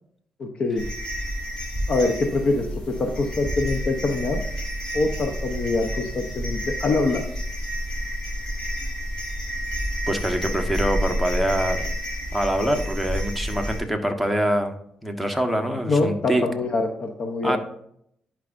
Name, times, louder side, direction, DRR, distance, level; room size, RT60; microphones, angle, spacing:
voice 1, 0.4-0.8 1.9-4.4 4.9-7.2 15.9-17.6, left 3 dB, 55° left, 4 dB, 0.9 m, -24 dB
sound 1, 0.8-13.8, equal, 35° left, 3.0 m, -29 dB
voice 2, 10.1-11.9 12.3-14.7 15.0-16.4 17.4-17.6, equal, 5° left, 5 dB, 1.2 m, -24 dB
11.0 x 4.9 x 2.6 m, 0.71 s
cardioid pair, 85°, 2 cm